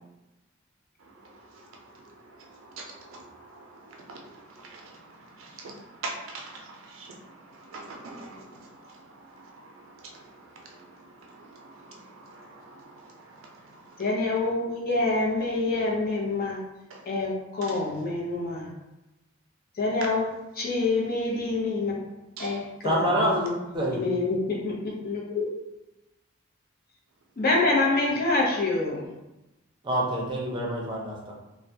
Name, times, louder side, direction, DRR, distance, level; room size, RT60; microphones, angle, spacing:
voice 1, 6.0-6.6 6.9-7.1 7.7-8.4 12.4-12.5 16.9-17.0 17.6-17.8 22.4-22.6, right 3 dB, 90° right, 0 dB, 0.5 m, -39 dB
voice 2, 14.0-16.6 17.1-18.7 19.8-20.3 20.6-21.9 22.4-23.3 23.9-25.5 27.4-29.1, left 3 dB, 50° left, -3 dB, 0.6 m, -26 dB
voice 3, 22.8-24.0 29.8-31.3, equal, 25° right, -4 dB, 0.5 m, -26 dB
2.2 x 2.1 x 2.7 m, 1.0 s
head